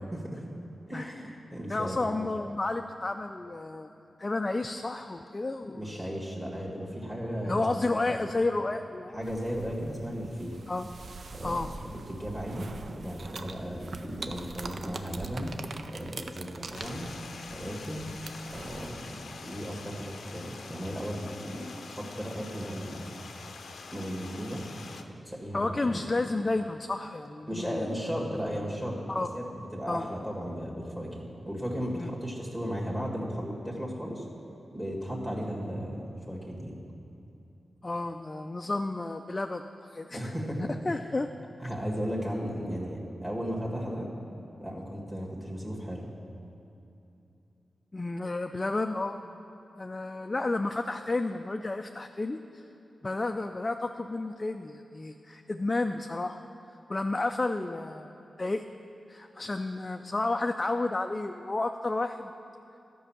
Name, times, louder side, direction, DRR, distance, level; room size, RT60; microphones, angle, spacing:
voice 1, 0.0-0.5 0.9-2.1 5.7-7.6 8.1-8.2 9.1-10.6 11.3-12.7 13.0-15.5 15.9-17.1 17.5-18.0 18.5-23.1 23.9-24.6 25.2-26.0 27.5-29.4 29.7-34.3 34.7-36.8 40.1-40.6 40.9-41.0 41.6-44.1 44.6-46.1, equal, 15° right, -3 dB, 1.9 m, -35 dB
voice 2, 1.7-3.9 4.2-6.1 7.4-9.1 10.7-10.9 11.4-11.7 25.5-27.9 29.1-29.3 29.9-30.0 31.9-32.1 37.8-40.3 40.8-41.3 47.9-49.2 49.8-52.6 53.0-56.4 56.9-58.1 58.4-58.6 59.1-62.3, left 2 dB, 30° left, 5 dB, 0.4 m, -31 dB
sound 1, 9.2-18.9, right 3 dB, 60° right, 0.5 m, -43 dB
Stream, 16.7-25.0, left 4 dB, 80° left, 0.6 m, -45 dB
12.0 x 5.4 x 7.2 m, 2.8 s
wide cardioid pair, 85°, 0 cm